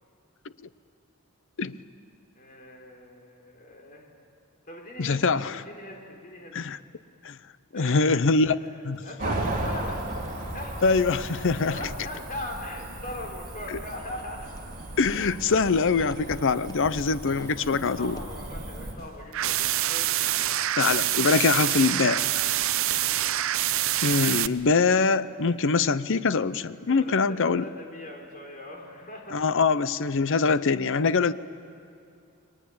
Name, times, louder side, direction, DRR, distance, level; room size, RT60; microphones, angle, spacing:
voice 1, 2.4-4.1 4.7-6.6 7.7-8.1 8.6-10.0 10.5-10.7 11.7-14.5 15.1-15.3 18.0-20.3 23.0-23.3 26.9-29.4, left 1 dB, 40° left, 1 dB, 4.1 m, -40 dB
voice 2, 5.0-5.6 6.5-6.8 7.2-7.4 7.7-8.6 8.8-9.0 10.8-11.8 13.7-13.8 15.0-18.2 20.8-22.5 24.0-27.7 29.3-31.3, left 4 dB, 60° left, 15 dB, 0.7 m, -23 dB
sound 1, 8.6-20.6, left 1 dB, 15° left, 0.9 m, -47 dB
Cricket / Motor vehicle (road), 9.2-18.9, right 1 dB, 40° right, 4.0 m, -36 dB
sound 2, 19.3-24.5, right 13 dB, 65° right, 0.7 m, -26 dB
30.0 x 22.0 x 8.6 m, 2.4 s
head